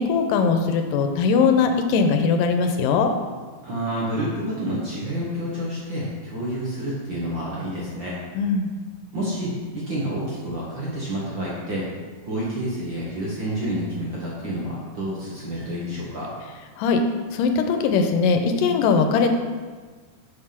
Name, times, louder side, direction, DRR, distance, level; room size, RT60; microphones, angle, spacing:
voice 1, 0.0-3.1 8.3-8.7 16.8-17.0 17.3-19.4, left 5 dB, 85° left, 6 dB, 2.3 m, -20 dB
voice 2, 3.6-8.2 9.1-11.9 12.2-16.3, equal, 50° right, -6 dB, 1.5 m, -29 dB
6.7 x 6.3 x 5.8 m, 1.5 s
omnidirectional pair, 3.9 m